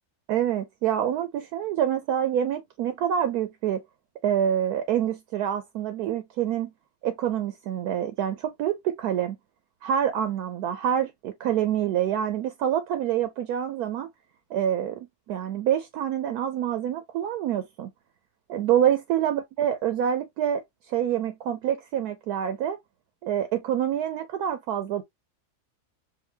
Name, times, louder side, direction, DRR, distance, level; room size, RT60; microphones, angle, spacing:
voice 1, 0.3-3.8 4.2-6.7 7.0-9.4 9.8-14.1 14.5-17.9 18.5-20.6 20.9-22.8 23.2-25.0, right 10 dB, 75° right, 1.1 m, -26 dB
4.8 x 2.5 x 2.8 m
omnidirectional pair, 1.7 m